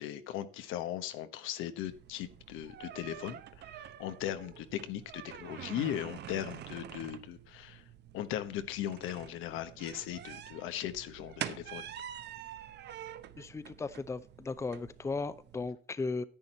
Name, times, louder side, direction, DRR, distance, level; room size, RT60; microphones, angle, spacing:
voice 1, 0.0-3.4 3.7-7.8 8.1-11.9, left 11 dB, 85° left, 1.2 m, -38 dB
sound 1, 1.8-15.7, right 10 dB, 55° right, 0.9 m, -47 dB
voice 2, 13.4-16.2, left 3 dB, 15° left, 0.6 m, -36 dB
10.5 x 9.0 x 4.3 m
cardioid pair, 120°, 20 cm